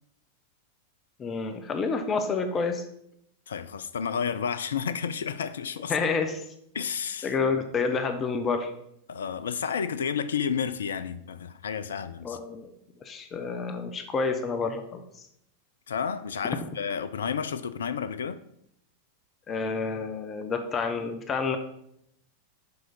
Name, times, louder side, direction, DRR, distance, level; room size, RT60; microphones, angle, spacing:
voice 1, 1.2-2.8 5.9-6.4 7.2-8.7 12.2-12.7 13.0-15.0 19.5-21.6, left 4 dB, 25° left, 0.6 m, -29 dB
voice 2, 3.5-5.9 6.7-7.3 9.1-12.4 15.9-18.4, left 7 dB, 65° left, 0.3 m, -31 dB
6.7 x 4.5 x 4.1 m
figure-of-eight pair, 90°, 0 cm